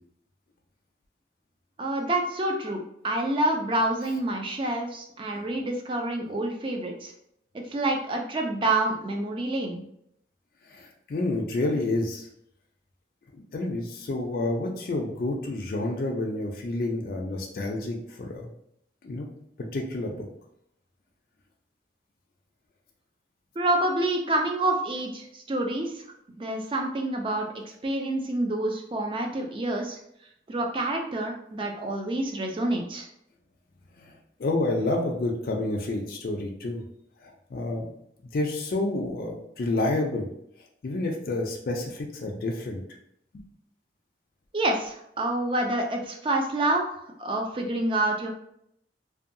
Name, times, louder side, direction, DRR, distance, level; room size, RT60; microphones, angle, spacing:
voice 1, 1.8-7.1 7.5-9.8 23.6-26.1 26.4-30.0 30.5-33.1 44.5-48.3, right 2 dB, 30° right, 2 dB, 0.3 m, -28 dB
voice 2, 10.7-12.3 13.3-18.5 19.0-19.3 19.7-20.3 34.0-34.1 34.4-36.8 37.2-37.9 38.3-40.3 40.8-42.8 43.3-43.4, left 2 dB, 55° left, 0 dB, 0.4 m, -29 dB
2.6 x 2.2 x 2.5 m, 0.73 s
head